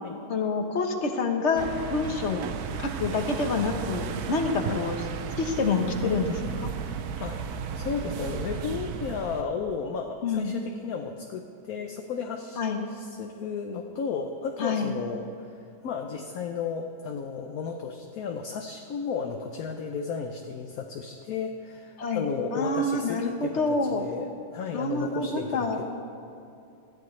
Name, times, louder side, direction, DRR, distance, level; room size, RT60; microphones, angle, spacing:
voice 1, 0.3-2.4 2.8-5.0 5.4-6.7 10.2-10.5 12.6-12.8 14.6-14.9 22.0-22.2 22.5-23.2 23.5-24.0 24.7-25.8, left 3 dB, 45° left, 4 dB, 1.2 m, -27 dB
sound 1, 1.6-9.4, right 7 dB, 65° right, 1.1 m, -34 dB
voice 2, 7.2-15.6 15.8-25.8, left 5 dB, 65° left, 4 dB, 1.1 m, -34 dB
19.5 x 14.0 x 3.2 m, 2.6 s
omnidirectional pair, 1.9 m